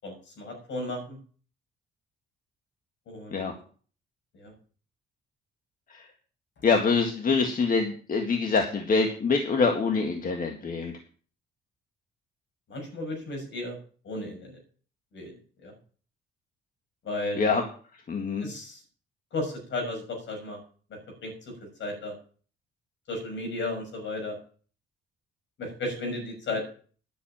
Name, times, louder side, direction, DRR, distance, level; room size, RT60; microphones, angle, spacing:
voice 1, 0.0-1.2 3.1-3.5 4.3-4.5 12.7-13.8 14.0-14.6 15.1-15.3 15.6-15.7 17.0-17.5 18.4-18.8 19.3-20.6 21.2-21.3 21.6-22.1 23.1-24.4 25.6-26.6, left 2 dB, 70° left, 3 dB, 6.4 m, -34 dB
voice 2, 6.6-10.9 17.4-17.6 18.1-18.5, left 4 dB, 45° left, 4 dB, 1.8 m, -25 dB
10.5 x 7.0 x 8.8 m, 0.43 s
cardioid pair, 90°, 20 cm